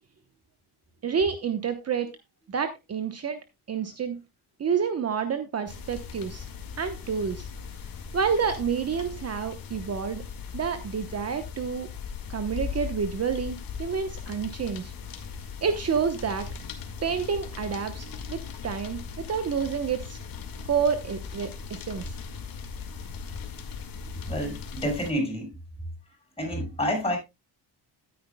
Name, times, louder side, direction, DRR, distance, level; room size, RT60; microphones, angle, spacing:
voice 1, 1.0-2.1 2.5-3.4 3.7-4.2 4.6-6.5 6.8-7.5 8.1-10.2 10.5-11.9 12.3-14.9 15.6-16.5 17.0-20.2 20.6-22.0, right 6 dB, 40° right, 0.9 m, -29 dB
sound 1, 5.7-25.1, left 6 dB, 55° left, 1.9 m, -39 dB
voice 2, 24.3-25.5 26.4-27.2, equal, 15° left, 5.5 m, -28 dB
13.0 x 9.6 x 2.2 m
cardioid pair, 125°, 40 cm